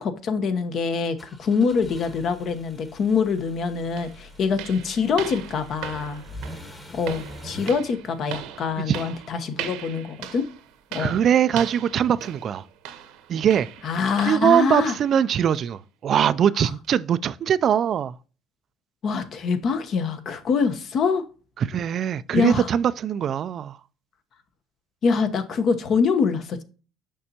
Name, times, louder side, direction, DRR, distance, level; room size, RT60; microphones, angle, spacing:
voice 1, 0.0-6.2 6.9-10.5 10.9-11.1 13.8-14.9 19.0-21.2 22.3-22.7 25.0-26.6, left 5 dB, 50° left, 0.9 m, -24 dB
sound 1, 1.2-7.7, left 1 dB, 20° left, 1.3 m, -43 dB
sound 2, 3.4-3.5 4.0-14.6 14.9-15.2 15.5-15.7 16.2-16.3 16.8-16.9, right 10 dB, 80° right, 0.9 m, -39 dB
voice 2, 11.0-12.6 13.3-13.7 14.2-18.2 21.6-23.8, right 9 dB, 50° right, 0.3 m, -22 dB
6.6 x 5.4 x 2.8 m
cardioid pair, 105°, 0 cm